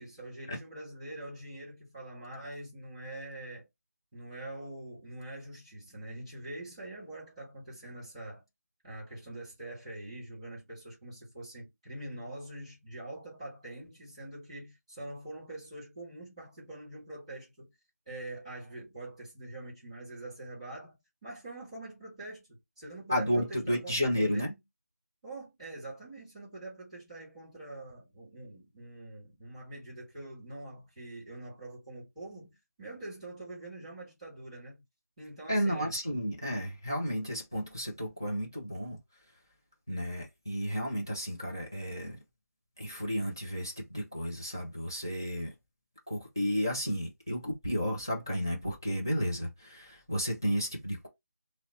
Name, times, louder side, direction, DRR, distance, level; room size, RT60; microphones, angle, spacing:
voice 1, 0.0-3.6 4.1-8.4 8.8-17.7 18.0-24.6 25.2-34.8 35.2-35.9, right 1 dB, 5° right, 1.5 m, -44 dB
voice 2, 23.1-24.5 35.5-39.0 39.9-42.2 42.8-45.5 46.1-51.1, equal, 15° left, 0.4 m, -32 dB
2.8 x 2.0 x 3.9 m
figure-of-eight pair, 180°, 9 cm